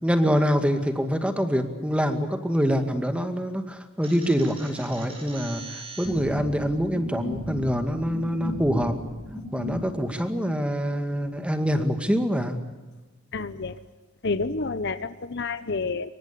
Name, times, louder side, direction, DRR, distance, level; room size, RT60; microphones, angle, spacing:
voice 1, 0.0-9.0 9.5-12.6, equal, 5° right, 7 dB, 2.2 m, -25 dB
sound 1, 4.0-9.8, left 1 dB, 25° right, 6.9 m, -36 dB
voice 2, 13.3-13.8 14.2-16.1, left 3 dB, 55° left, 13 dB, 1.0 m, -29 dB
26.5 x 23.5 x 6.9 m, 1.2 s
head